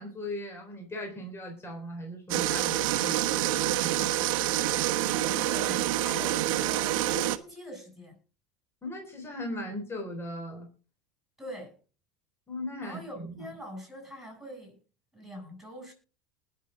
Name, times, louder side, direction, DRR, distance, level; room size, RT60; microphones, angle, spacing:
voice 1, 0.0-3.2 3.7-4.3 8.8-10.7 12.5-13.4, left 1 dB, 15° left, 3.8 m, -38 dB
sound 1, 2.3-7.4, right 14 dB, 80° right, 1.1 m, -27 dB
voice 2, 5.1-8.2 11.4-11.8 12.8-14.8 15.1-15.9, equal, ahead, 7.9 m, -43 dB
20.0 x 7.1 x 3.9 m
supercardioid pair, 125°, 17 cm